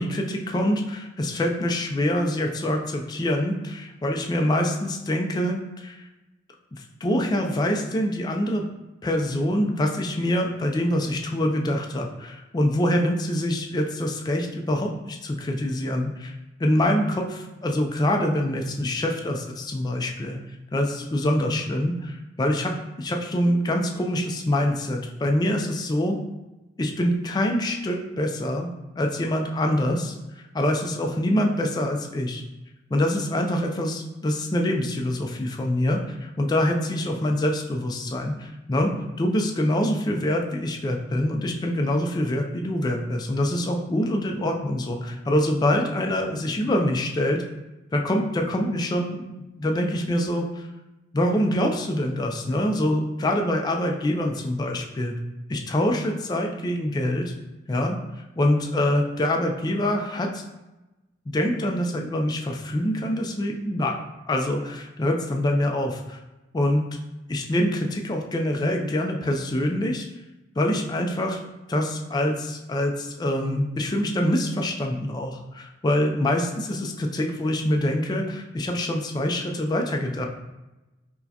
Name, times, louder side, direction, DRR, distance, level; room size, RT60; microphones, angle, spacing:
voice 1, 0.0-6.1 6.7-8.7 9.0-20.4 20.7-26.2 26.8-28.7 29.0-32.4 32.9-38.9 39.2-47.4 47.9-49.3 49.6-50.7 51.1-55.1 55.5-57.3 57.7-58.0 58.4-60.4 61.3-64.0 64.3-66.2 66.5-66.8 67.3-70.1 70.6-71.4 71.7-80.3, left 1 dB, 25° left, 2 dB, 0.3 m, -25 dB
4.5 x 2.1 x 2.7 m, 1.0 s
head